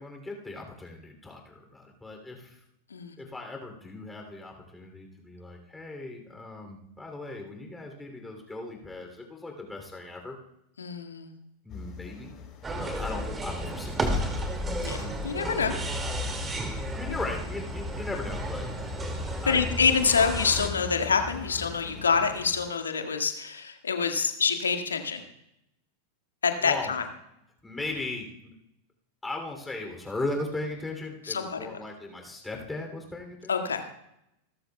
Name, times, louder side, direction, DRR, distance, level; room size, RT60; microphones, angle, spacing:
voice 1, 0.0-2.6 3.2-10.4 11.6-12.3 12.8-14.5 16.9-18.7 19.4-19.6 26.6-26.9 27.6-28.5 29.2-33.7, left 2 dB, 10° left, 2 dB, 3.0 m, -38 dB
voice 2, 10.8-11.3 14.8-15.7 19.5-25.2 26.4-27.0 31.3-31.6 33.5-33.9, left 5 dB, 70° left, 5 dB, 1.8 m, -26 dB
sound 1, 11.7-22.7, left 4 dB, 30° left, 3.8 m, -41 dB
sound 2, 12.6-20.7, right 1 dB, 15° right, 2.2 m, -33 dB
28.0 x 13.5 x 2.3 m, 0.82 s
figure-of-eight pair, 90°, 0 cm